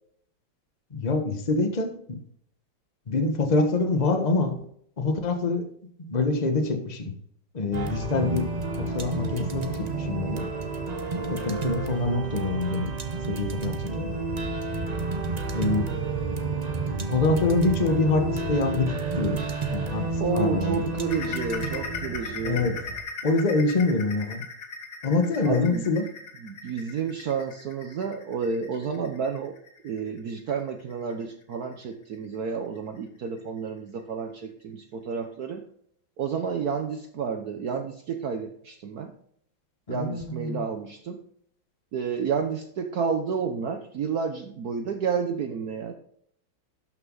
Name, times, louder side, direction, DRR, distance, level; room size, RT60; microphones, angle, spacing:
voice 1, 0.9-1.9 3.1-4.5 5.0-5.6 6.0-7.1 7.5-8.5 8.9-10.5 11.3-12.9 13.3-14.1 15.5-15.9 17.1-19.4 19.7-20.0 20.3-20.9 22.4-22.7 23.2-24.4 25.0-26.0 39.9-40.6, left 3 dB, 25° left, 5 dB, 1.2 m, -25 dB
sound 1, 7.7-23.0, right 3 dB, 35° right, 0.6 m, -30 dB
voice 2, 20.2-22.7 25.4-25.9 26.4-29.6 29.8-35.6 36.2-39.1 39.9-41.2 41.9-45.9, right 6 dB, 60° right, 6 dB, 1.2 m, -30 dB
sound 2, 21.1-32.4 32.8-33.0 33.4-33.5 34.0-34.1, left 4 dB, 65° left, 2.3 m, -39 dB
12.0 x 6.1 x 3.9 m, 0.66 s
omnidirectional pair, 2.2 m